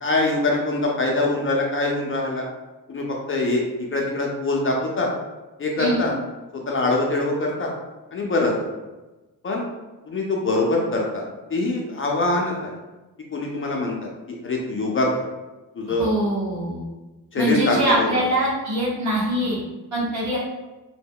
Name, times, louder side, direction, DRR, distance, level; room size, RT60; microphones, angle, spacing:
voice 1, 0.0-2.5 2.9-3.6 3.9-5.1 5.6-6.1 6.5-7.7 8.1-8.7 9.4-9.7 10.1-11.2 11.5-12.7 13.3-15.2 15.7-16.1 17.3-18.3, left 2 dB, 35° left, -1 dB, 0.4 m, -23 dB
voice 2, 16.0-16.8 17.3-19.6 19.9-20.4, right 1 dB, 50° right, -5 dB, 1.1 m, -23 dB
2.2 x 2.0 x 3.6 m, 1.1 s
cardioid pair, 105°, 36 cm